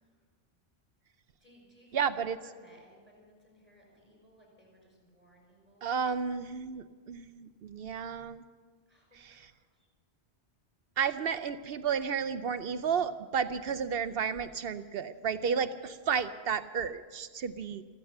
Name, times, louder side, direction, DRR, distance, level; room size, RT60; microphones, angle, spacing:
voice 1, 1.4-5.8 8.9-9.9, equal, 10° left, -2 dB, 5.4 m, -60 dB
voice 2, 1.9-2.4 5.8-8.4 9.1-9.5 11.0-17.8, right 6 dB, 65° right, 12 dB, 0.8 m, -32 dB
14.5 x 14.5 x 6.6 m, 1.5 s
omnidirectional pair, 1.1 m